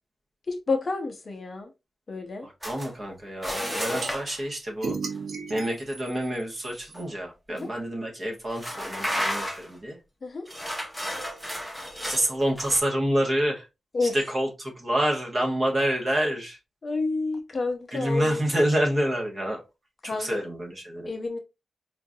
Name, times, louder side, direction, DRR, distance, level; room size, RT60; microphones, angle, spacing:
voice 1, 0.5-1.7 2.1-2.5 7.5-7.7 10.2-10.5 13.9-14.2 16.8-18.4 20.0-20.4 21.1-21.4, left 3 dB, 40° left, 0.6 m, -29 dB
voice 2, 2.4-5.0 5.5-10.0 12.0-13.7 14.0-16.6 17.9-19.6 20.0-21.1, right 1 dB, 30° right, 1.0 m, -27 dB
sound 1, 2.6-2.9 3.4-4.4 6.9-7.1 7.6-7.7 8.5-9.7 10.5-12.8, equal, ahead, 0.7 m, -32 dB
sound 2, 4.0-4.1 4.8-7.0, right 4 dB, 75° right, 0.7 m, -35 dB
4.7 x 2.4 x 2.6 m
wide cardioid pair, 180°, 0 cm